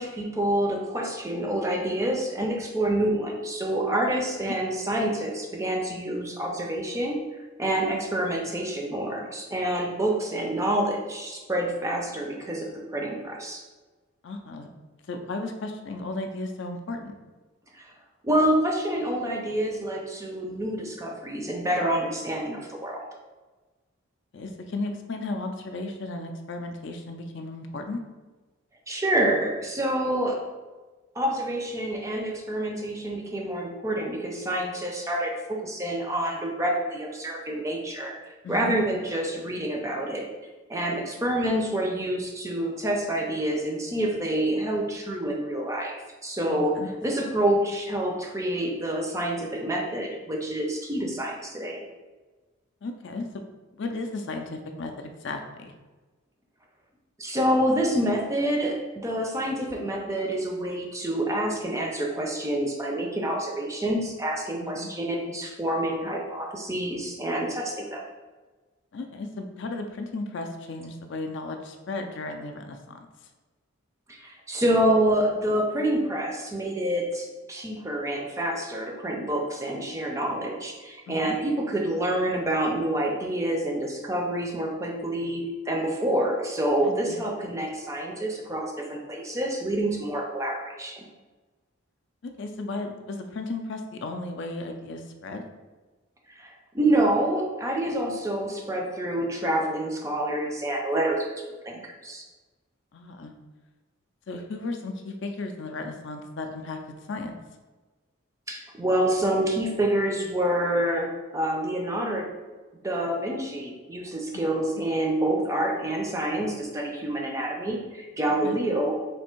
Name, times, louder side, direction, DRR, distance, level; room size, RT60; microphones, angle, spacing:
voice 1, 0.0-7.2 7.6-13.6 17.7-17.9 18.2-23.1 28.9-30.4 31.2-38.1 38.5-40.3 40.7-45.9 46.2-46.7 47.0-51.8 57.2-68.0 74.1-91.0 96.3-101.3 101.6-102.2 108.5-112.3 112.8-118.9, right 1 dB, 15° right, 0 dB, 0.4 m, -27 dB
voice 2, 14.2-14.7 15.1-17.1 24.3-28.0 38.4-38.7 41.1-41.3 46.5-46.9 52.8-53.3 53.8-55.7 64.6-64.9 68.9-73.0 81.1-81.3 86.8-87.2 92.2-95.4 102.9-103.3 104.3-106.8 107.1-107.4 118.4-118.6, left 2 dB, 55° left, 5 dB, 0.4 m, -35 dB
3.4 x 2.6 x 4.4 m, 1.2 s
head